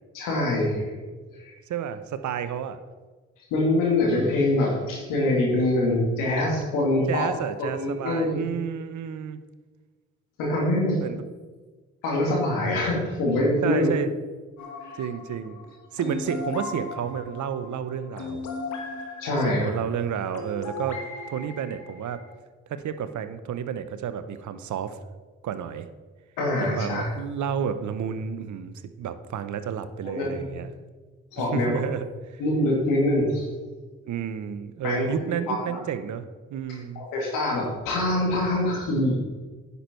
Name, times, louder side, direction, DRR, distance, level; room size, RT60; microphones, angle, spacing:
voice 1, 0.1-1.0 1.4-1.5 3.5-7.3 7.7-8.4 10.4-11.0 12.0-13.9 14.8-14.9 19.2-19.7 26.4-27.1 30.0-30.6 31.3-31.8 32.4-33.5 34.8-35.8 37.0-39.2, left 1 dB, 85° left, -2 dB, 2.6 m, -24 dB
voice 2, 1.7-2.8 7.1-9.4 11.0-11.2 13.6-14.1 14.9-15.6 15.9-18.4 19.4-21.0 21.3-22.2 22.7-25.0 25.4-25.9 26.6-30.7 31.5-32.1 34.1-36.2 36.5-37.0, right 8 dB, 65° right, 11 dB, 0.9 m, -31 dB
sound 1, 14.6-22.3, left 3 dB, 65° left, 1.5 m, -37 dB
10.0 x 7.0 x 4.5 m, 1.3 s
hypercardioid pair, 45°, 32 cm